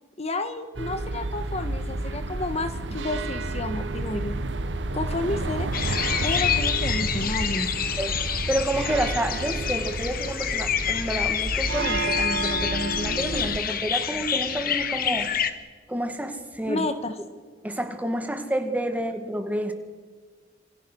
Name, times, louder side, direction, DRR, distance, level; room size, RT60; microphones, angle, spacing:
voice 1, 0.2-4.4 4.9-5.7 6.2-7.8 16.7-17.1, left 2 dB, 35° left, 9 dB, 1.4 m, -30 dB
sound 1, 0.8-13.6, right 2 dB, 80° right, 1.3 m, -30 dB
sound 2, 5.7-15.5, left 8 dB, 55° left, 1.4 m, -28 dB
voice 2, 8.0-15.3 15.9-16.9 17.6-19.7, right 1 dB, 10° right, 6 dB, 2.1 m, -29 dB
27.0 x 24.0 x 6.3 m, 1.5 s
head